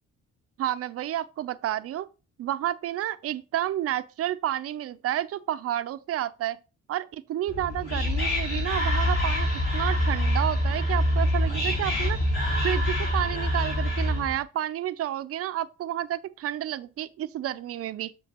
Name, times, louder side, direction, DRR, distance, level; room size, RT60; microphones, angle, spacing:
voice 1, 0.6-2.1 2.4-6.6 6.9-9.5 9.7-12.2 12.6-18.1, right 12 dB, 50° right, 0.4 m, -30 dB
Whispering, 7.5-14.4, left 1 dB, 50° left, 3.1 m, -25 dB
7.2 x 6.3 x 2.9 m
cardioid pair, 145°, 29 cm